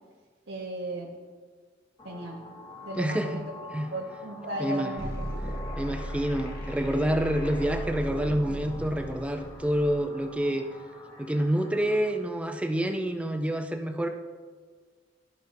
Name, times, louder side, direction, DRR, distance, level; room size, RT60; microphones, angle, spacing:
voice 1, 0.5-1.1 2.0-2.4 2.8-5.3, right 1 dB, 85° right, -4 dB, 1.1 m, -36 dB
sound 1, 2.0-12.1, left 2 dB, 25° left, 1.1 m, -47 dB
voice 2, 2.9-3.4 3.7-3.9 4.6-4.9 5.8-10.7 11.2-14.1, equal, 5° right, 5 dB, 0.4 m, -28 dB
sound 2, 5.0-10.0, equal, 55° left, 1.6 m, -36 dB
12.5 x 5.2 x 2.6 m, 1.5 s
head